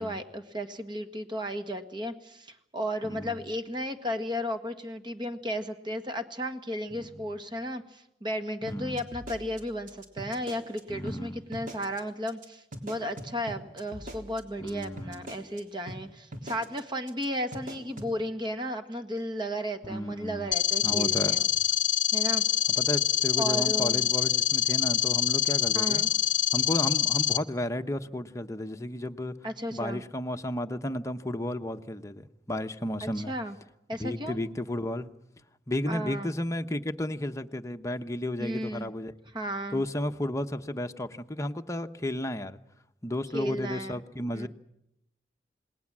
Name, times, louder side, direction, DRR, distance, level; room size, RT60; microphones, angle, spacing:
voice 1, 0.0-21.5 22.1-22.4 23.4-24.1 25.7-26.1 29.4-30.0 33.0-33.6 33.9-34.4 35.9-36.3 38.4-38.9 39.3-39.8 43.3-44.0 44.3-44.5, equal, 25° right, 1.7 m, -34 dB
voice 2, 3.0-3.3 7.0-7.1 8.6-9.0 10.9-11.4 14.6-15.3 19.8-20.5 20.8-21.4 22.8-26.0 26.5-29.3 29.7-33.3 34.0-35.1 35.7-39.1 39.7-42.6 43.0-44.5, left 1 dB, 20° left, 1.0 m, -33 dB
sound 1, 8.7-10.8 11.1-11.2 11.5-12.0 12.3-12.5 12.7-15.6 15.9-16.0 16.3-16.8 17.1-17.2 17.5-18.1, right 1 dB, 50° right, 3.6 m, -41 dB
sound 2, 20.5-27.4, left 11 dB, 45° left, 0.8 m, -25 dB
28.0 x 20.0 x 7.5 m
head